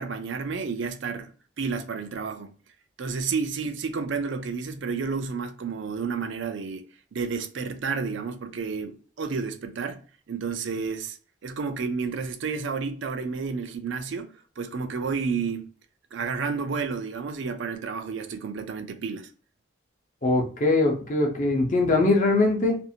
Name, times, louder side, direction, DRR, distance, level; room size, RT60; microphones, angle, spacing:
voice 1, 0.0-1.3 1.6-2.6 3.0-6.9 7.1-10.0 10.3-11.2 11.4-15.6 16.1-19.3, right 5 dB, 70° right, 0.4 m, -31 dB
voice 2, 20.2-22.8, left 2 dB, 40° left, 0.7 m, -22 dB
2.6 x 2.4 x 2.7 m
head